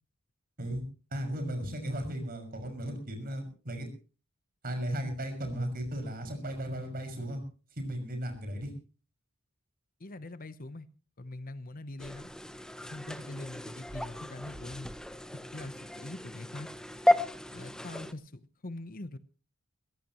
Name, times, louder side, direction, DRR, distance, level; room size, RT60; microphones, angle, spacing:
voice 1, 1.1-3.9 4.6-7.4 7.8-8.7, right 1 dB, 45° right, 5 dB, 6.1 m, -35 dB
voice 2, 10.0-10.9 11.2-12.3 12.8-14.9 15.3-16.7 17.5-19.2, left 2 dB, 40° left, 13 dB, 0.9 m, -43 dB
sound 1, 12.0-18.1, left 1 dB, 5° left, 1.0 m, -33 dB
22.5 x 16.5 x 3.1 m, 0.36 s
head